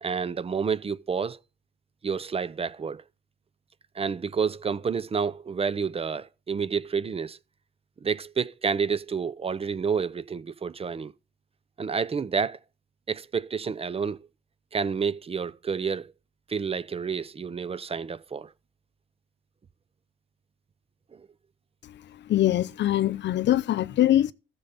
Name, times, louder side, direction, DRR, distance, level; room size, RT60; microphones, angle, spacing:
voice 1, 0.0-1.4 2.0-3.0 3.9-7.4 8.0-11.1 11.8-12.6 13.1-14.2 14.7-16.1 16.5-18.5 21.1-21.3, right 6 dB, 30° right, 0.5 m, -29 dB
voice 2, 22.3-24.3, left 13 dB, 65° left, 0.6 m, -22 dB
14.5 x 7.0 x 4.0 m
cardioid pair, 90°, 20 cm